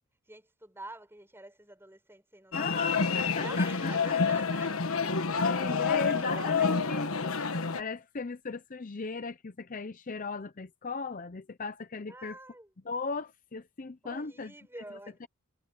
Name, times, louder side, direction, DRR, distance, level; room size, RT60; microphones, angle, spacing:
voice 1, 0.3-2.9 3.4-4.7 6.1-6.6 12.1-12.7 14.0-15.2, right 2 dB, 10° right, 7.2 m, -47 dB
sound 1, 2.5-7.8, left 5 dB, 70° left, 1.4 m, -28 dB
voice 2, 2.5-4.5 5.2-12.4 12.8-14.5 14.9-15.3, left 4 dB, 35° left, 0.6 m, -37 dB
head